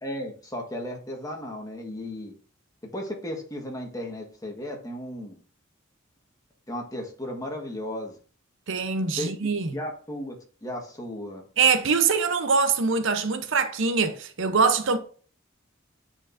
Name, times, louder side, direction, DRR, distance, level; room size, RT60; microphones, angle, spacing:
voice 1, 0.0-2.3 2.9-5.4 6.7-8.2 9.2-9.3 9.7-10.4 10.6-11.4, left 1 dB, 20° left, 1.4 m, -35 dB
voice 2, 8.7-9.7 11.6-15.0, right 5 dB, 65° right, 0.7 m, -23 dB
10.0 x 4.5 x 2.6 m
head